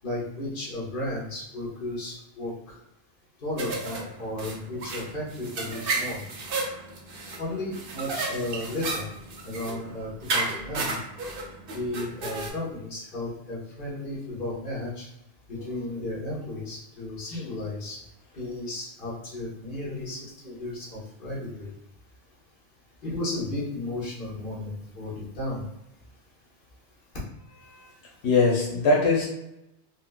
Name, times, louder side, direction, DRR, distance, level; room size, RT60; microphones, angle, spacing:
voice 1, 0.0-2.8 3.4-6.2 7.4-9.1 9.4-11.0 11.7-15.1 15.5-18.0 18.3-21.7 23.0-25.7, left 1 dB, 50° left, -6 dB, 1.3 m, -34 dB
sound 1, 3.6-12.5, right 3 dB, 60° right, 0.8 m, -33 dB
voice 2, 28.2-29.2, left 3 dB, 85° left, -3 dB, 1.0 m, -21 dB
4.2 x 2.1 x 2.2 m, 0.85 s
omnidirectional pair, 1.1 m